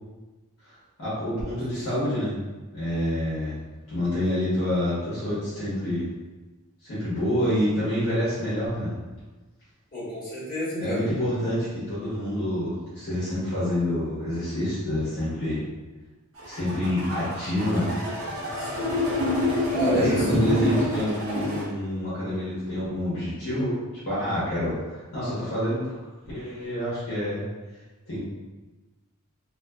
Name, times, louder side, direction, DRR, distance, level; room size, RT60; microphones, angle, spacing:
voice 1, 1.0-2.4 2.7-3.6 3.9-6.1 6.8-8.9 10.8-15.6 16.4-17.9 19.9-23.8 24.0-25.9 26.3-27.4 28.1-28.2, left 1 dB, 65° left, -11 dB, 1.0 m, -27 dB
voice 2, 9.9-11.0 18.6-18.9 19.7-20.2, equal, 40° left, -11 dB, 1.3 m, -29 dB
sound 1, 16.4-21.6, left 1 dB, 65° right, 0.8 m, -27 dB
2.4 x 2.4 x 2.2 m, 1.2 s
head